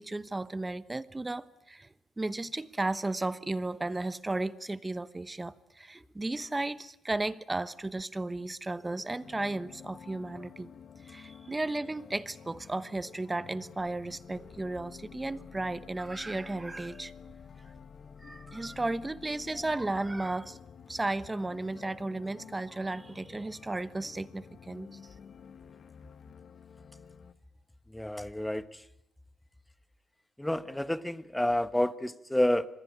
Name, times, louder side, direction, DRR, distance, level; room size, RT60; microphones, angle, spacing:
voice 1, 0.0-1.9 2.2-10.7 11.0-17.1 18.2-20.6 20.9-24.9, right 2 dB, 15° right, 1.1 m, -34 dB
sound 1, 9.2-27.3, left 7 dB, 55° left, 1.3 m, -50 dB
voice 2, 27.9-28.8 30.4-32.7, left 1 dB, 5° left, 1.1 m, -29 dB
26.0 x 20.5 x 8.7 m
cardioid pair, 90°, 0 cm